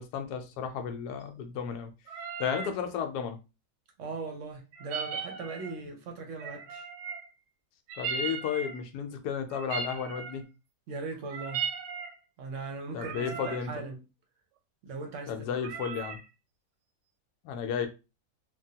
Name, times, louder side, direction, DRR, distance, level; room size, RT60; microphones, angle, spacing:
voice 1, 0.0-1.9 2.4-3.4 8.0-10.4 12.9-13.7 15.3-16.2 17.4-17.9, left 7 dB, 75° left, 1.1 m, -33 dB
sound 1, 2.1-2.8 4.7-5.8 6.4-7.3 7.9-8.9 9.5-10.4 11.1-12.2 12.9-13.7 15.6-16.3, right 6 dB, 75° right, 1.1 m, -37 dB
voice 2, 4.0-6.9 10.9-11.7 12.4-14.0 14.8-15.5, right 3 dB, 60° right, 0.9 m, -39 dB
3.3 x 2.2 x 2.7 m
omnidirectional pair, 1.8 m